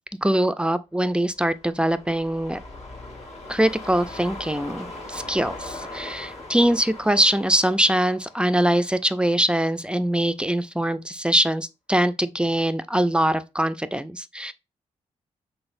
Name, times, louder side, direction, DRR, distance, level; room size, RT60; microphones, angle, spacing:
voice 1, 0.2-2.6 3.5-14.5, right 1 dB, 5° right, 0.3 m, -23 dB
auto car passby slow on snow crunchy, 1.4-9.8 10.2-10.3, left 2 dB, 50° left, 1.4 m, -40 dB
4.0 x 3.4 x 2.5 m
supercardioid pair, 50°, 14 cm